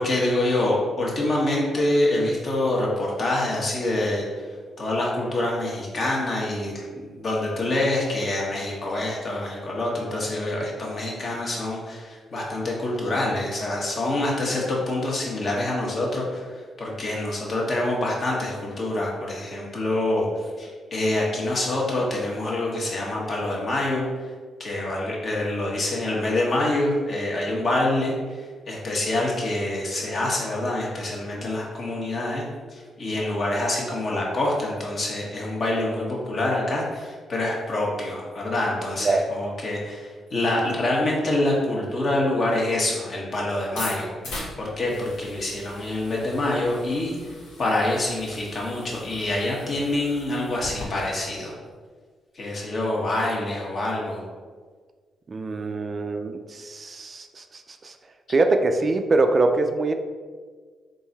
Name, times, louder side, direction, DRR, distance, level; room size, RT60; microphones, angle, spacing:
voice 1, 0.0-4.2 4.8-24.0 24.6-32.4 32.7-47.2 47.6-51.5 52.3-54.2, left 1 dB, 50° left, -3 dB, 1.2 m, -26 dB
sound 1, 43.6-50.8, left 2 dB, 85° left, 1.1 m, -40 dB
voice 2, 55.3-57.4 57.8-57.9 58.3-59.9, right 3 dB, 40° right, 6 dB, 0.3 m, -23 dB
3.8 x 2.6 x 4.1 m, 1.5 s
supercardioid pair, 65°, 0 cm